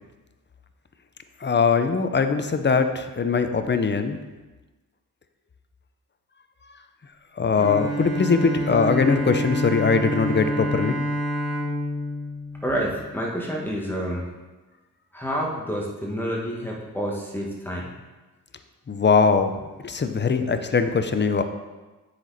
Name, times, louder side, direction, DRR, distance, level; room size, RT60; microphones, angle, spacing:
voice 1, 1.4-4.2 7.4-11.0 18.9-19.5 19.8-21.4, left 5 dB, 30° left, 8 dB, 0.7 m, -21 dB
Bowed string instrument, 7.5-13.4, equal, 45° right, 2.4 m, -28 dB
voice 2, 12.6-14.3 15.1-17.9, equal, 5° left, -4 dB, 1.6 m, -28 dB
7.7 x 6.1 x 4.1 m, 1.2 s
cardioid pair, 70°, 35 cm